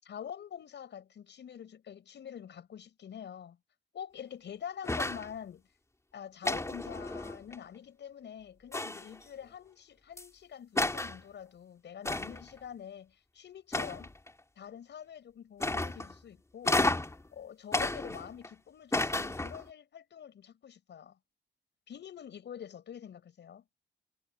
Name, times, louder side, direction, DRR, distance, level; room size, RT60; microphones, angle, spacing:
voice 1, 0.0-3.6 3.9-5.6 6.1-14.1 14.6-16.8 17.3-21.2 21.9-23.6, left 8 dB, 80° left, 7.0 m, -46 dB
sound 1, 4.8-5.3 6.4-7.6 8.7-9.2 10.2-10.3 10.8-11.2 12.0-12.5 13.7-14.3 15.6-16.1 16.6-17.2 17.7-18.5 18.9-19.7, left 2 dB, 15° left, 3.3 m, -32 dB
wide cardioid pair, 125°, 18 cm